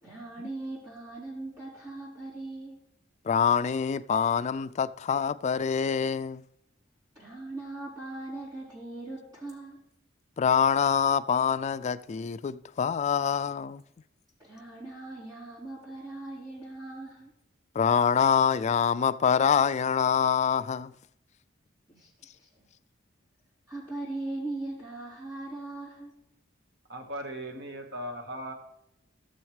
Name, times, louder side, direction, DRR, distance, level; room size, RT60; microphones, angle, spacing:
voice 1, 0.0-2.8 7.1-9.8 14.4-17.3 21.9-22.1 22.4-22.7 23.7-26.2, right 2 dB, 20° right, 4.1 m, -39 dB
voice 2, 3.2-6.4 10.4-13.8 17.8-20.9, left 7 dB, 35° left, 0.3 m, -25 dB
voice 3, 26.9-28.5, right 1 dB, 60° right, 1.6 m, -38 dB
15.5 x 7.2 x 3.3 m
head